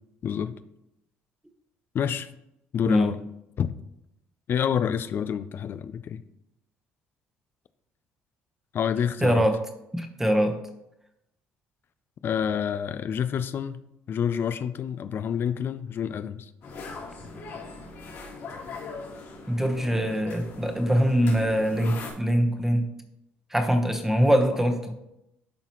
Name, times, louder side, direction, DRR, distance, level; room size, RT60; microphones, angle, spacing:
voice 1, 0.2-0.6 1.9-2.3 2.7-3.2 3.6-3.7 4.5-6.2 8.7-9.4 12.2-13.8 14.1-16.5, left 8 dB, 50° left, 13 dB, 0.4 m, -28 dB
voice 2, 9.2-9.6 9.9-10.6 19.5-22.9 23.5-24.9, equal, 10° right, 5 dB, 1.0 m, -23 dB
sound 1, 16.6-22.1, left 3 dB, 75° left, 2.5 m, -40 dB
11.5 x 3.9 x 3.0 m, 0.85 s
supercardioid pair, 75°, 5 cm